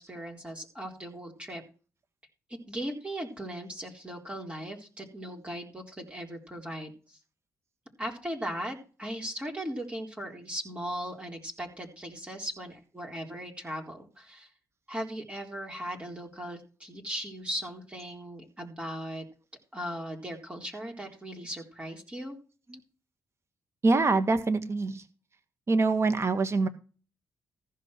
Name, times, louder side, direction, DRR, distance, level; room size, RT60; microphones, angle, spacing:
voice 1, 0.0-1.6 2.5-7.2 8.0-14.5 14.9-19.3 19.7-22.4, equal, 15° right, 1 dB, 3.8 m, -38 dB
voice 2, 23.8-25.0 25.7-26.7, right 3 dB, 40° right, 10 dB, 1.7 m, -25 dB
15.0 x 5.6 x 6.1 m, 0.36 s
cardioid pair, 65°, 7 cm